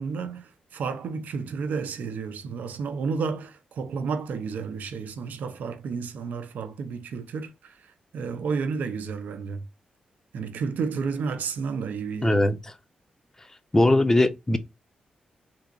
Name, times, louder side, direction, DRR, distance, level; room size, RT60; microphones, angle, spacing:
voice 1, 0.0-7.8 8.1-9.6 10.3-12.4, right 5 dB, 85° right, 0.5 m, -31 dB
voice 2, 12.2-12.6 13.7-14.6, left 1 dB, 15° left, 0.4 m, -20 dB
3.4 x 2.8 x 2.5 m
wide cardioid pair, 110°, 3 cm